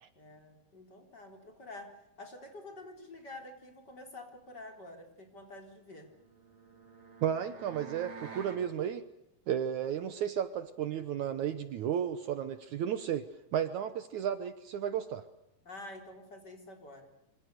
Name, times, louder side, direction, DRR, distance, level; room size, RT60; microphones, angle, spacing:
voice 1, 0.2-1.9 2.2-6.1 15.6-17.1, left 2 dB, 30° left, 4 dB, 4.4 m, -48 dB
sound 1, 6.1-8.7, right 4 dB, 45° right, 5.8 m, -49 dB
voice 2, 7.2-9.0 9.5-13.3 13.5-15.2, right 9 dB, 65° right, 11 dB, 2.3 m, -33 dB
26.5 x 26.0 x 6.7 m, 0.81 s
omnidirectional pair, 4.0 m